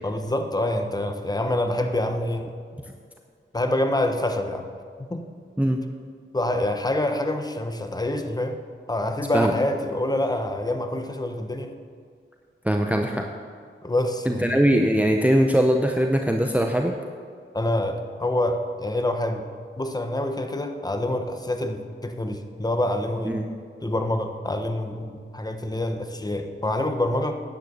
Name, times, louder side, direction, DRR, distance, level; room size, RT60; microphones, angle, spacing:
voice 1, 0.0-2.5 3.5-4.7 5.0-5.2 6.3-8.6 8.9-11.7 13.8-14.5 17.5-19.5 19.8-23.3 23.8-27.4, left 1 dB, 20° left, 6 dB, 1.1 m, -26 dB
voice 2, 12.6-13.3 14.3-16.9 23.2-23.5, right 1 dB, 5° right, 3 dB, 0.7 m, -21 dB
10.0 x 9.6 x 7.0 m, 2.1 s
wide cardioid pair, 85°, 21 cm